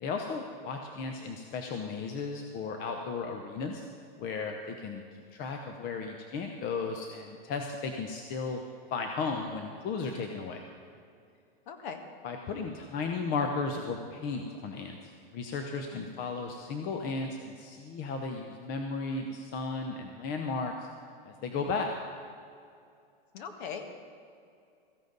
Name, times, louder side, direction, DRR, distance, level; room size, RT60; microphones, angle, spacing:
voice 1, 0.0-3.8 4.2-5.0 5.3-8.6 8.9-10.6 12.2-20.9 21.2-21.9, left 4 dB, 30° left, 3 dB, 0.9 m, -35 dB
voice 2, 11.7-12.0 15.9-16.1 23.3-24.0, left 6 dB, 55° left, 6 dB, 1.8 m, -40 dB
16.0 x 14.5 x 4.0 m, 2.4 s
hypercardioid pair, 145°, 29 cm